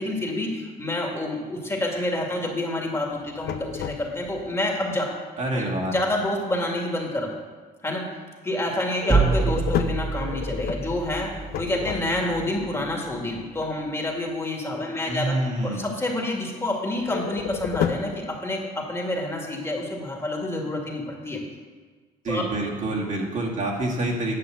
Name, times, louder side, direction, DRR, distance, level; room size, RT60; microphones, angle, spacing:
voice 1, 0.0-5.0 5.5-7.4 7.8-8.0 8.4-15.3 15.6-21.4 22.3-22.4, left 1 dB, 15° left, -1 dB, 2.2 m, -28 dB
Squeaky Gas Meter Loop, 3.1-4.5 9.0-12.5 17.0-18.2, left 10 dB, 70° left, 0.7 m, -31 dB
voice 2, 5.4-5.9 15.1-15.8 22.2-24.4, right 1 dB, 45° right, -2 dB, 2.2 m, -27 dB
sound 1, 9.1-13.0, right 4 dB, 20° right, 0.8 m, -27 dB
10.0 x 5.5 x 7.7 m, 1.5 s
cardioid pair, 110°, 17 cm